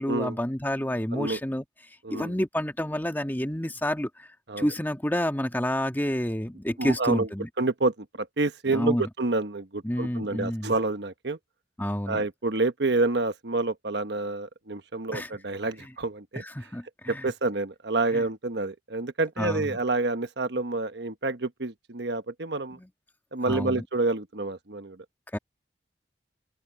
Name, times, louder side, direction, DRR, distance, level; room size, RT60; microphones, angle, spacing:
voice 1, 0.0-1.6 2.1-4.3 4.6-7.5 8.7-9.1 9.8-10.7 11.8-12.2 15.1-15.3 16.4-17.3 18.1-18.2 19.4-19.7 22.8-22.9 23.5-23.8 25.3-25.4, left 1 dB, 10° left, 1.6 m, -29 dB
voice 2, 2.0-2.4 4.5-4.7 6.8-7.3 7.6-11.4 12.1-16.4 17.1-22.8 23.3-25.0, right 3 dB, 65° right, 1.2 m, -28 dB
open air
head